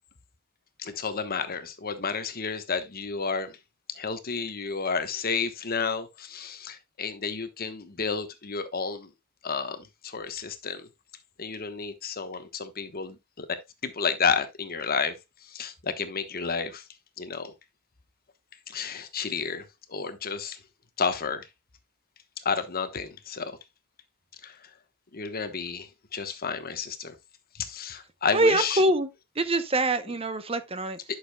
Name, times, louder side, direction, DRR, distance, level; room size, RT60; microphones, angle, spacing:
voice 1, 0.8-3.5 3.9-9.1 9.4-10.9 11.4-13.5 13.8-15.2 15.4-16.8 17.2-17.5 18.7-20.6 21.0-21.5 22.4-23.6 24.4-24.6 25.1-27.1 27.5-28.8, left 5 dB, 45° left, 1.1 m, -31 dB
voice 2, 28.3-29.1 29.4-31.0, right 1 dB, 25° right, 0.7 m, -24 dB
11.0 x 6.7 x 2.2 m
head